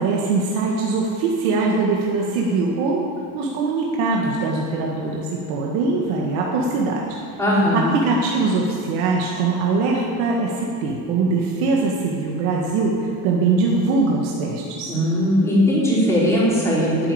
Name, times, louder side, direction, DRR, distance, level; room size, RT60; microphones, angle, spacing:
voice 1, 0.0-3.1 3.3-7.2 7.7-14.9, right 3 dB, 80° right, -2 dB, 1.9 m, -22 dB
voice 2, 7.4-7.9 14.9-17.1, equal, 5° left, -7 dB, 3.9 m, -19 dB
10.0 x 9.7 x 8.8 m, 2.6 s
cardioid pair, 160°, 43 cm